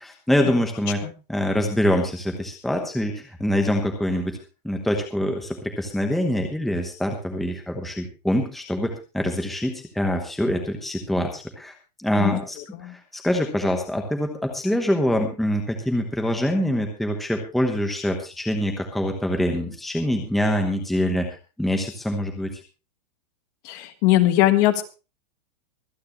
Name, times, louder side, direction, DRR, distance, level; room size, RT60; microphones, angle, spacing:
voice 1, 0.0-1.0 1.3-4.3 4.6-11.7 12.0-21.3 21.6-22.5, equal, ahead, 3 dB, 1.1 m, -25 dB
voice 2, 23.6-24.8, left 15 dB, 30° left, 9 dB, 1.4 m, -20 dB
24.5 x 9.5 x 3.0 m, 0.32 s
supercardioid pair, 180°, 21 cm